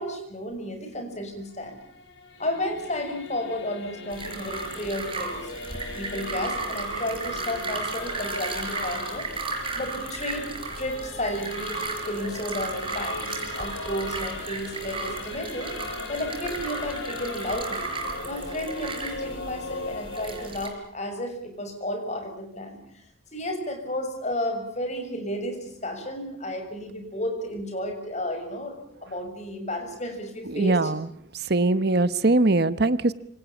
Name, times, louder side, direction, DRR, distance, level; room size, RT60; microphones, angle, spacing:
voice 1, 0.0-1.8 2.4-5.5 5.9-9.3 9.7-10.5 10.8-15.7 16.1-17.9 18.3-23.0 23.3-30.9 31.7-31.8, left 1 dB, 35° left, 5 dB, 6.8 m, -32 dB
Singing / Musical instrument, 1.1-20.5, left 3 dB, 70° left, 4.1 m, -39 dB
sound 1, 4.1-20.7, right 3 dB, 25° right, 5.3 m, -35 dB
voice 2, 30.5-31.1 31.5-33.1, right 2 dB, 55° right, 14 dB, 1.1 m, -21 dB
27.0 x 25.5 x 7.2 m, 0.65 s
head